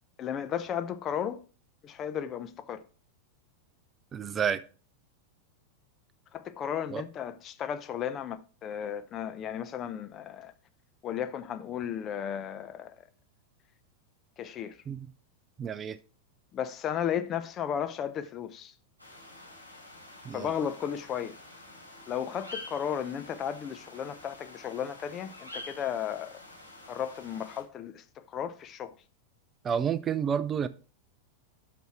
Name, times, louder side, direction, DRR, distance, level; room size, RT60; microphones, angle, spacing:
voice 1, 0.2-1.4 1.8-2.8 6.3-10.5 11.0-13.0 14.4-14.8 16.5-18.7 20.3-21.4 22.1-26.4 26.9-28.9, left 9 dB, 30° left, 0.7 m, -34 dB
voice 2, 4.1-4.6 6.9-7.0 14.9-15.1 15.6-16.0 20.2-20.5 29.6-30.7, right 7 dB, 25° right, 0.4 m, -30 dB
sound 1, 19.0-27.6, left 2 dB, 90° left, 3.8 m, -48 dB
8.0 x 6.1 x 4.4 m
figure-of-eight pair, 90°, 0 cm